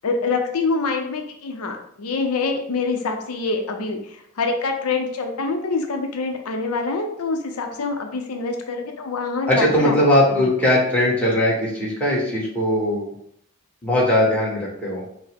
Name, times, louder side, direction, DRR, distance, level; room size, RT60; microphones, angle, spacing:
voice 1, 0.0-10.6, left 4 dB, 85° left, 4 dB, 0.6 m, -25 dB
voice 2, 9.5-13.1 13.8-15.0, left 1 dB, 5° left, -7 dB, 1.3 m, -19 dB
5.6 x 2.1 x 3.4 m, 0.70 s
head